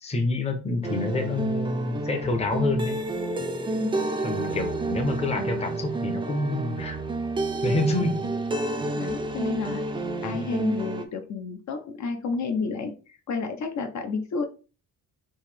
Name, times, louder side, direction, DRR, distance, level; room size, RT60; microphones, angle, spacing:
voice 1, 0.0-3.0 4.2-7.0 7.6-8.1, left 2 dB, 20° left, 5 dB, 0.7 m, -27 dB
sound 1, 0.8-11.0, right 2 dB, 15° right, 0.4 m, -29 dB
voice 2, 3.8-4.6 8.0-8.3 8.9-9.9 10.2-14.4, left 4 dB, 50° left, 6 dB, 0.7 m, -31 dB
5.5 x 2.7 x 3.3 m, 0.35 s
cardioid pair, 170°, 36 cm